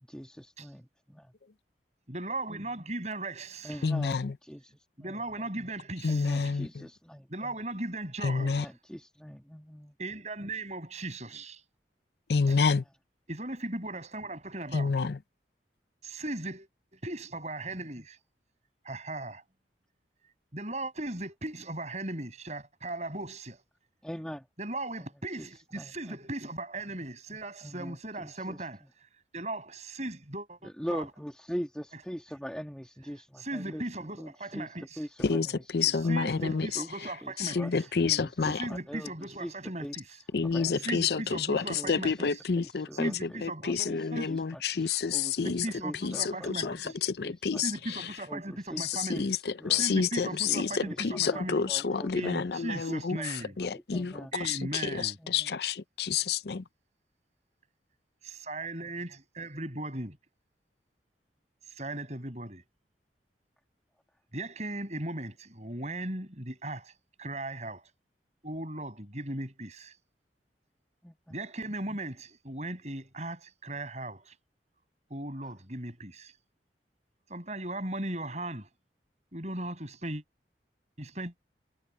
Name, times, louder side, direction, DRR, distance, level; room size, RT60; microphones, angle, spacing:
voice 1, 0.1-1.3 3.6-5.5 6.1-7.6 8.4-10.0 12.5-12.9 24.0-24.5 25.0-25.5 25.7-26.2 27.6-28.9 30.6-36.9 37.2-39.5 39.8-42.3 42.6-44.0 44.2-47.6 48.3-48.8 49.1-50.6 50.9-52.3 52.7-54.3 55.2-55.5 71.0-71.4 75.4-75.5, equal, 5° left, 1.7 m, -43 dB
voice 2, 2.1-3.8 5.0-6.3 7.3-8.6 10.0-11.6 12.5-12.6 13.3-14.9 16.0-18.2 18.8-19.4 20.5-23.6 24.6-28.8 29.3-31.0 33.4-35.0 35.9-37.7 38.4-40.0 40.8-42.4 42.9-44.3 45.4-46.9 47.6-49.3 49.8-51.6 52.1-53.6 54.3-55.2 58.2-60.2 61.7-62.6 64.3-66.9 67.2-67.8 68.4-69.9 71.3-74.3 75.1-76.3 77.3-78.7 79.3-80.2 81.0-81.3, right 2 dB, 40° right, 7.2 m, -37 dB
voice 3, 3.8-4.3 6.0-6.7 8.2-8.6 12.3-12.8 14.7-15.2 35.2-35.5 35.7-36.8 37.4-38.7 40.3-45.7 46.0-48.1 48.8-53.2 53.6-56.6, left 5 dB, 65° left, 0.6 m, -29 dB
head